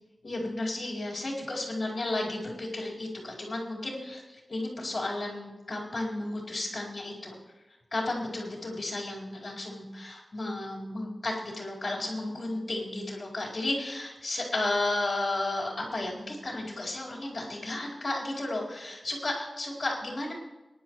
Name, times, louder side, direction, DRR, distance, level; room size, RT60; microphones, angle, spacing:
voice 1, 0.2-7.4 7.9-20.3, left 2 dB, 50° left, -4 dB, 4.6 m, -33 dB
23.5 x 11.0 x 3.2 m, 1.1 s
wide cardioid pair, 100°, 0 cm